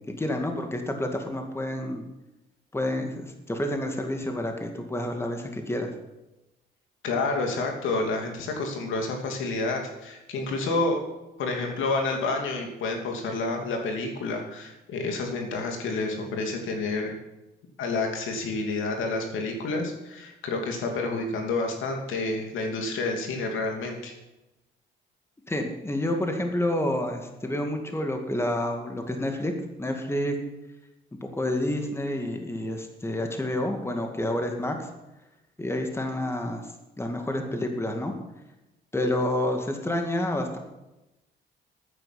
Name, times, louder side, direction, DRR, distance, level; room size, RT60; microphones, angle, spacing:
voice 1, 0.0-2.0 2.7-5.9 25.5-29.5 29.8-30.4 31.2-34.9 35.6-36.7 37.0-38.1 38.9-40.6, left 1 dB, 10° left, 4 dB, 2.2 m, -29 dB
voice 2, 7.0-11.0 11.4-17.1 17.8-24.1, left 3 dB, 85° left, 2 dB, 2.8 m, -29 dB
13.5 x 9.7 x 5.9 m, 0.97 s
cardioid pair, 90°, 20 cm